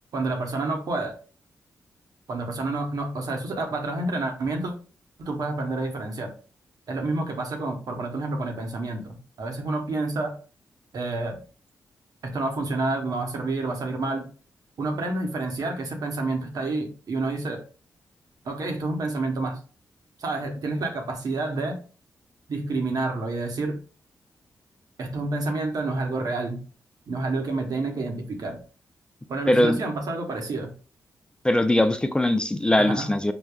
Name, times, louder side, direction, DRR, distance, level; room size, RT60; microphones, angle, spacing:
voice 1, 0.1-1.1 2.3-4.7 5.2-6.3 6.9-10.4 10.9-11.4 12.2-14.3 14.8-17.6 18.4-19.6 20.2-21.8 22.5-23.8 25.0-26.6 27.1-28.6 29.3-30.7 32.8-33.1, right 2 dB, 65° right, 1.0 m, -29 dB
voice 2, 29.5-29.8 31.4-33.3, left 1 dB, 10° left, 0.4 m, -21 dB
5.1 x 2.2 x 2.2 m
supercardioid pair, 45°, 7 cm